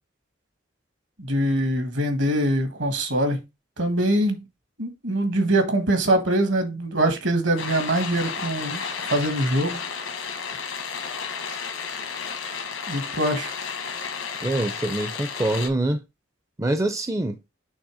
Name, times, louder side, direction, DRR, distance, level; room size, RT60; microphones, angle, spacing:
voice 1, 1.2-3.4 3.8-4.4 4.8-8.8 9.1-9.8 12.9-13.5, right 1 dB, 65° right, 1.4 m, -23 dB
sound 1, 7.6-15.7, left 6 dB, 80° left, 1.2 m, -32 dB
voice 2, 14.4-16.0 16.6-17.4, right 1 dB, 15° right, 0.4 m, -25 dB
6.3 x 3.3 x 4.9 m
head